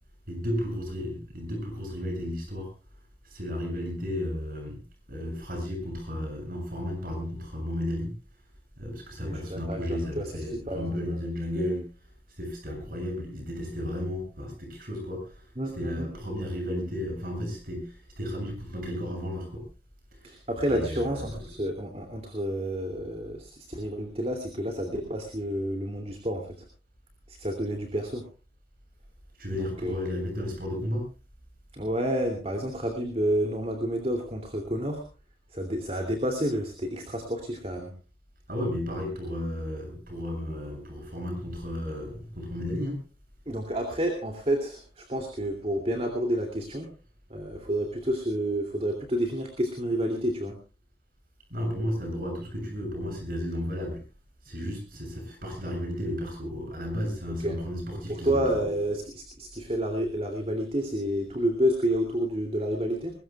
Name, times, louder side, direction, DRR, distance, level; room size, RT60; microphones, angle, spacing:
voice 1, 0.3-2.7 3.2-4.8 5.1-8.1 8.8-11.9 12.3-19.6 20.1-20.3 20.7-21.4 29.4-31.0 38.5-43.0 51.5-54.0 54.4-58.4, equal, 50° right, 3 dB, 7.2 m, -33 dB
voice 2, 9.2-10.3 10.7-11.2 15.6-16.1 20.2-26.5 27.3-28.2 29.6-29.9 31.7-35.0 35.5-37.9 43.5-46.9 47.3-50.5 57.4-57.5 57.9-63.1, equal, 35° right, 3 dB, 2.6 m, -29 dB
22.0 x 20.5 x 2.3 m, 0.34 s
head